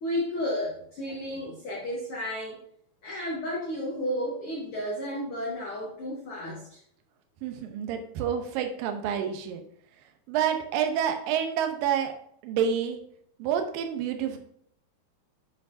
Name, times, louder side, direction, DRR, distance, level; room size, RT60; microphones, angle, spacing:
voice 1, 0.0-2.6 3.0-6.8, equal, 60° left, -4 dB, 1.5 m, -32 dB
voice 2, 7.4-9.6 10.3-12.1 12.4-13.0 13.4-14.4, right 8 dB, 80° right, 6 dB, 2.4 m, -28 dB
7.9 x 7.0 x 2.6 m, 0.68 s
omnidirectional pair, 4.3 m